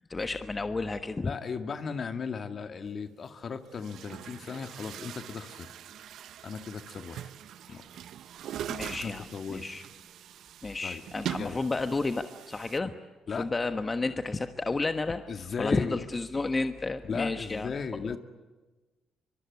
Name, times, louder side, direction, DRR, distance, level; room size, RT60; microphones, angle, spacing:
voice 1, 0.1-1.3 8.7-9.8 10.6-12.9 13.4-15.2 15.6-17.7 18.0-18.2, left 3 dB, 25° left, 8 dB, 1.3 m, -31 dB
voice 2, 1.2-5.7 6.4-7.3 7.7-7.8 8.9-9.7 10.8-11.0 11.4-11.6 13.3-13.5 15.3-16.0 17.0-18.2, left 5 dB, 50° left, 7 dB, 2.0 m, -36 dB
Chatter / Gurgling / Tap, 2.9-3.0 3.7-12.8, right 10 dB, 70° right, 0.8 m, -42 dB
24.5 x 23.5 x 9.6 m, 1.2 s
supercardioid pair, 65°, 0 cm